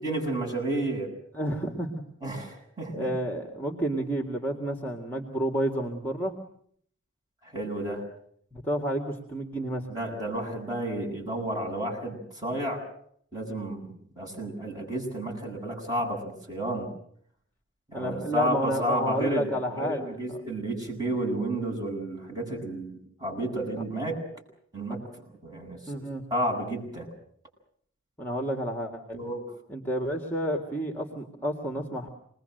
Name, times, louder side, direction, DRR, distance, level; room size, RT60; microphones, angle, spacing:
voice 1, 0.0-1.1 2.2-3.1 7.4-8.0 9.9-12.9 13.3-13.9 14.2-16.9 17.9-24.2 24.7-25.0 25.4-25.8 26.3-27.1 29.1-29.4, right 1 dB, 20° right, -2 dB, 7.9 m, -31 dB
voice 2, 1.3-2.0 2.9-6.3 8.5-9.9 17.9-20.4 25.9-26.2 28.2-29.2 29.7-32.1, equal, 10° left, 3 dB, 1.9 m, -30 dB
27.5 x 21.0 x 7.8 m, 0.65 s
head